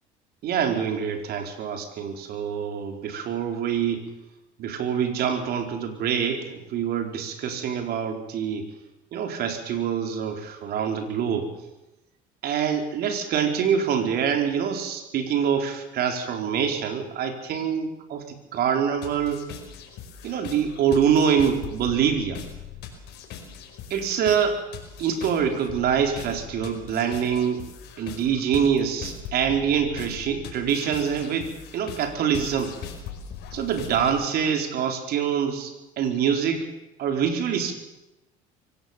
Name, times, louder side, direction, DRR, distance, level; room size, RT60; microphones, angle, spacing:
voice 1, 0.4-4.0 4.6-8.7 9.1-11.5 12.4-19.4 20.2-22.4 23.9-24.6 25.0-27.6 28.0-32.7 33.5-36.7 37.0-37.8, right 7 dB, 60° right, 5 dB, 4.1 m, -25 dB
sound 1, 19.0-34.3, left 8 dB, 65° left, 5.1 m, -40 dB
24.0 x 17.5 x 7.3 m, 0.93 s
supercardioid pair, 90°, 18 cm